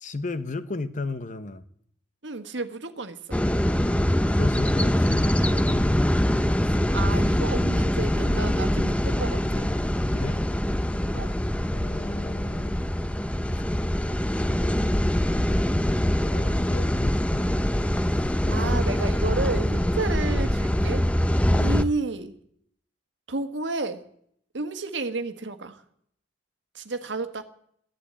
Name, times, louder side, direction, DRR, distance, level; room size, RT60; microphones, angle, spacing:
voice 1, 0.0-1.6 4.3-5.9 10.1-10.4 11.7-12.8 13.5-13.6 15.7-18.0 18.2-18.7 21.5-21.8, left 3 dB, 45° left, 12 dB, 0.9 m, -35 dB
voice 2, 2.2-3.4 6.6-9.7 11.1-11.4 18.5-21.1 21.6-22.3 23.3-24.0 24.5-25.8 26.7-27.4, right 3 dB, 85° right, 9 dB, 1.4 m, -31 dB
sound 1, 3.3-21.8, equal, 5° left, 0.6 m, -24 dB
14.0 x 11.5 x 8.7 m, 0.68 s
head